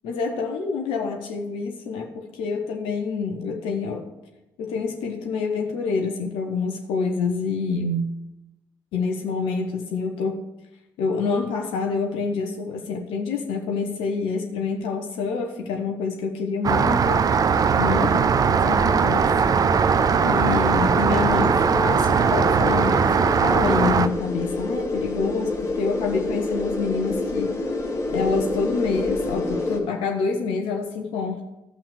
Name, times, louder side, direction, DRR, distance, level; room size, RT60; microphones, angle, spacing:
voice 1, 0.0-4.1 4.6-8.1 8.9-10.4 11.0-17.3 17.8-18.3 18.6-19.3 20.2-27.6 28.1-31.4, left 4 dB, 60° left, 3 dB, 1.1 m, -27 dB
Rain, 16.6-24.1, right 6 dB, 35° right, 0.5 m, -20 dB
sound 1, 17.1-29.8, left 2 dB, 30° left, 2.6 m, -29 dB
14.5 x 5.9 x 6.5 m, 0.98 s
figure-of-eight pair, 40°, 10 cm